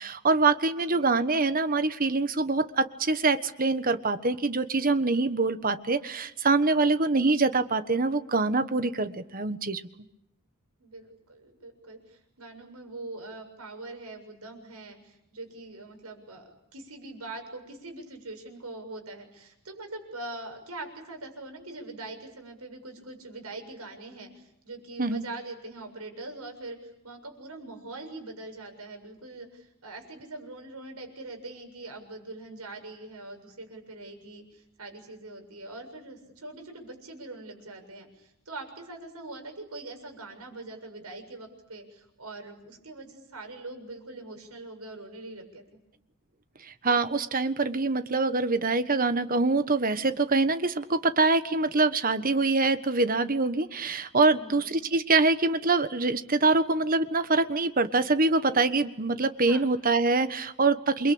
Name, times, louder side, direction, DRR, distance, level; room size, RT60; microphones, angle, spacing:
voice 1, 0.0-9.8 25.0-25.2 46.6-61.1, right 3 dB, 40° right, 11 dB, 1.4 m, -25 dB
voice 2, 0.9-1.2 10.8-26.8 27.0-45.8 54.2-54.7 59.5-59.7, right 2 dB, 80° right, 4 dB, 7.3 m, -43 dB
29.0 x 23.0 x 8.8 m, 0.81 s
head